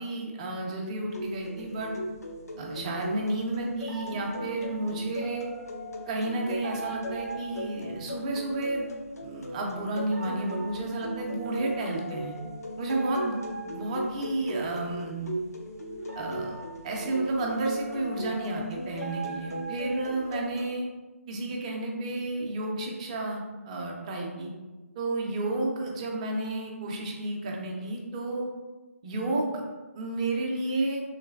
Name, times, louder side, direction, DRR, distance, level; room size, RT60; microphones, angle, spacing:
voice 1, 0.0-1.9 2.6-5.5 6.1-8.9 9.2-12.4 12.8-13.4 13.6-15.3 16.1-16.6 16.8-20.9 21.3-24.5 25.0-28.5 29.0-29.6 29.9-31.0, right 2 dB, 25° right, 0 dB, 0.5 m, -31 dB
sound 1, 1.1-20.7, equal, 85° left, 0.5 m, -38 dB
sound 2, 3.9-8.5 10.1-14.7 16.0-20.6, right 3 dB, 75° right, 0.5 m, -43 dB
3.2 x 3.0 x 2.3 m, 1.2 s
figure-of-eight pair, 150°, 8 cm